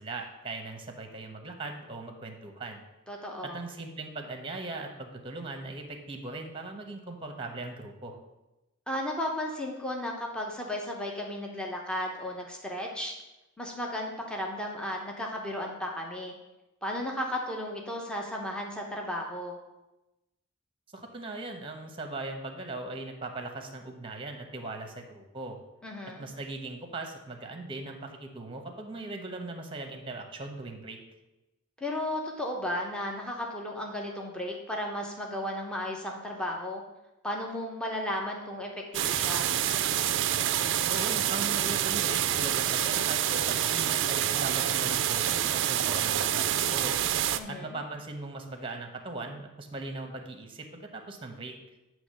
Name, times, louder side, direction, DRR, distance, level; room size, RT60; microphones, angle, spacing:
voice 1, 0.0-2.8 3.4-8.2 20.9-25.6 26.2-31.0 40.9-47.0 47.5-51.5, right 2 dB, 25° right, 5 dB, 1.0 m, -39 dB
voice 2, 3.1-3.6 8.9-13.1 13.6-16.3 16.8-19.6 25.8-26.3 31.8-36.8 37.2-39.5 47.3-47.8, left 1 dB, 5° left, -1 dB, 0.9 m, -34 dB
sound 1, 38.9-47.4, right 11 dB, 55° right, 0.4 m, -27 dB
9.3 x 3.1 x 6.5 m, 0.99 s
head